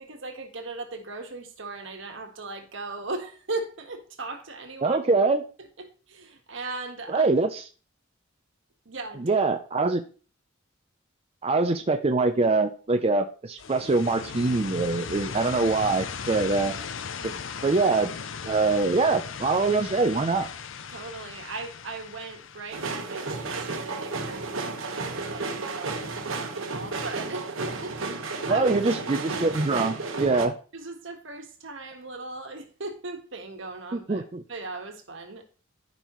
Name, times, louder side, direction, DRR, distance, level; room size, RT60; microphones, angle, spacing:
voice 1, 0.0-5.0 5.6-7.3 8.8-9.4 20.9-29.2 30.7-34.2 34.5-35.4, right 3 dB, 65° right, 1.5 m, -38 dB
voice 2, 4.8-5.4 7.1-7.6 9.2-10.0 11.4-16.7 17.2-17.3 17.6-18.1 18.4-20.5 28.5-30.5 33.9-34.4, right 3 dB, 30° right, 0.5 m, -24 dB
sound 1, 13.6-24.3, left 6 dB, 65° left, 0.6 m, -38 dB
sound 2, 22.7-30.5, right 3 dB, 85° right, 1.3 m, -32 dB
14.0 x 5.4 x 3.1 m
head